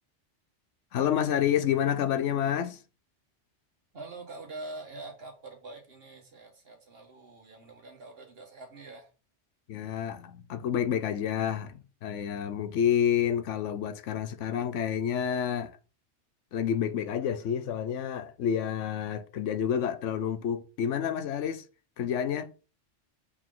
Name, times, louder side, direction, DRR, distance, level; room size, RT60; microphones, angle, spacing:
voice 1, 0.9-2.8 9.7-15.8 16.5-21.6 22.0-22.5, left 9 dB, 90° left, 1.0 m, -29 dB
voice 2, 3.9-9.1, right 2 dB, 55° right, 1.5 m, -45 dB
7.0 x 3.8 x 3.8 m
omnidirectional pair, 1.2 m